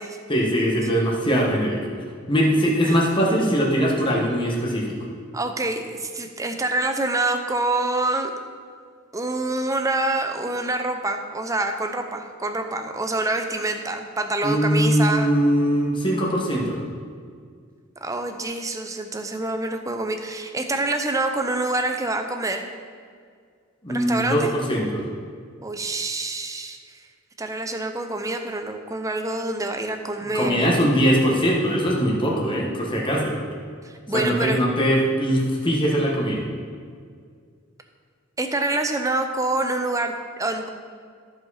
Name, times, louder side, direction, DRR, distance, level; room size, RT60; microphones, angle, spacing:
voice 1, 0.3-1.8 2.3-4.9 14.4-16.8 23.8-25.0 30.3-33.3 34.1-36.4, equal, 25° left, -2 dB, 1.5 m, -21 dB
voice 2, 5.3-8.3 9.1-15.3 18.0-22.7 23.9-24.5 25.6-27.0 27.4-30.8 33.8-34.6 38.4-40.7, right 2 dB, 15° right, 6 dB, 0.6 m, -26 dB
14.0 x 5.0 x 4.1 m, 2.1 s
head